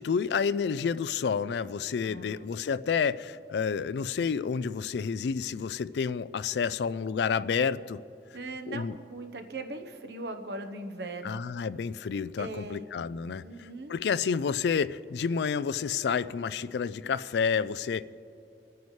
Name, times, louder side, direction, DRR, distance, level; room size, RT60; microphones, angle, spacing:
voice 1, 0.0-8.0 8.7-8.9 11.2-18.0, left 6 dB, 65° left, 17 dB, 0.3 m, -29 dB
voice 2, 2.0-2.6 8.3-11.4 12.4-12.9 13.4-13.9, right 2 dB, 60° right, 6 dB, 0.9 m, -40 dB
26.5 x 9.4 x 3.2 m, 2.8 s
head